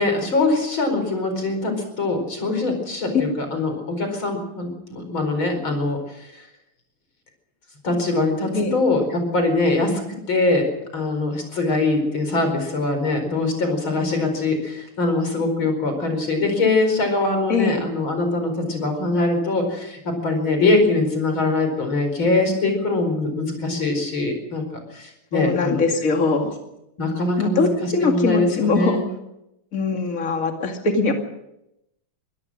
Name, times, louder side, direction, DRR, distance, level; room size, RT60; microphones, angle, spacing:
voice 1, 0.0-6.4 7.8-24.6 24.9-25.8 27.0-27.7 28.0-29.0, left 2 dB, 65° left, 5 dB, 5.5 m, -22 dB
voice 2, 25.3-26.5 27.4-29.0 29.7-31.1, left 3 dB, 40° left, 4 dB, 2.7 m, -21 dB
24.0 x 17.0 x 6.5 m, 0.86 s
omnidirectional pair, 2.3 m